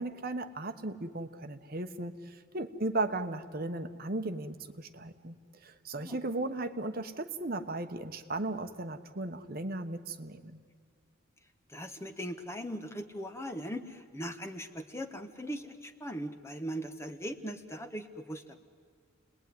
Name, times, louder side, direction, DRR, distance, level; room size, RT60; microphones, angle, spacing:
voice 1, 0.0-5.4 5.6-10.6, right 2 dB, 45° right, 9 dB, 1.1 m, -36 dB
voice 2, 11.7-18.6, equal, 15° left, 8 dB, 1.1 m, -39 dB
29.5 x 20.5 x 9.5 m, 2.1 s
head